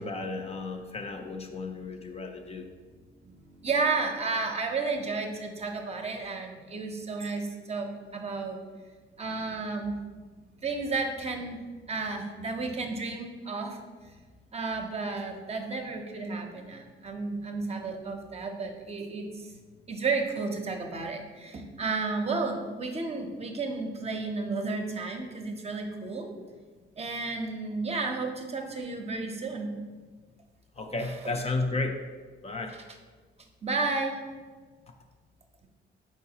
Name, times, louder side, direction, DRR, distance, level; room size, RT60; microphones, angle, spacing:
voice 1, 0.0-2.7 30.8-32.0 32.4-32.7, left 3 dB, 30° left, 4 dB, 0.4 m, -33 dB
voice 2, 2.9-7.9 8.1-8.6 9.2-10.0 10.6-11.6 11.9-13.8 14.5-19.5 19.9-26.3 27.0-29.7 31.0-31.2 32.7-32.8 33.6-34.2, right 3 dB, 30° right, 3 dB, 0.6 m, -32 dB
4.7 x 3.9 x 2.8 m, 1.4 s
cardioid pair, 90°, 20 cm